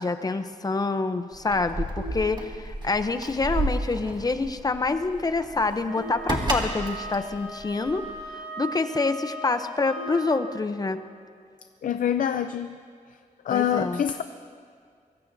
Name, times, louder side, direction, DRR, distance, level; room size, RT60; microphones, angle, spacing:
voice 1, 0.0-8.1 8.6-11.0 13.5-14.0, left 3 dB, 30° left, 9 dB, 0.6 m, -26 dB
Keys jangling, 1.3-8.3, right 2 dB, 35° right, 2.1 m, -32 dB
sound 1, 2.0-2.9 5.9-7.0 10.0-11.0, equal, 65° right, 1.7 m, -43 dB
Wind instrument woodwind instrument, 5.8-10.4, right 1 dB, 10° right, 5.7 m, -39 dB
voice 2, 11.8-12.8 13.4-14.2, left 9 dB, 80° left, 9 dB, 0.5 m, -25 dB
23.5 x 23.0 x 2.7 m, 2.2 s
wide cardioid pair, 135°, 14 cm